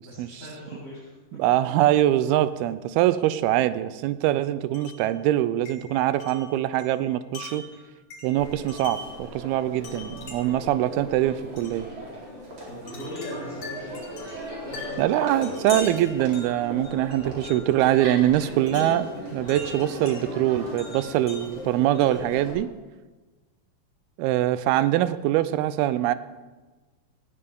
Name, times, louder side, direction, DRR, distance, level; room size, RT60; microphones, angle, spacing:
voice 1, 0.0-1.1 12.7-14.1 14.6-15.4, left 1 dB, 25° left, -12 dB, 5.0 m, -39 dB
voice 2, 1.4-7.6 8.2-11.9 15.0-22.7 24.2-26.1, right 13 dB, 85° right, 14 dB, 2.5 m, -23 dB
Wind chime, 4.7-5.1 5.7-9.2 9.8-10.7 11.6-11.8 12.9-17.8 18.7-20.2 20.8-22.3, left 3 dB, 55° left, 4.1 m, -42 dB
Crowd, 8.4-22.5, right 1 dB, 40° right, 4.7 m, -38 dB
18.5 x 15.5 x 3.7 m, 1.2 s
omnidirectional pair, 4.3 m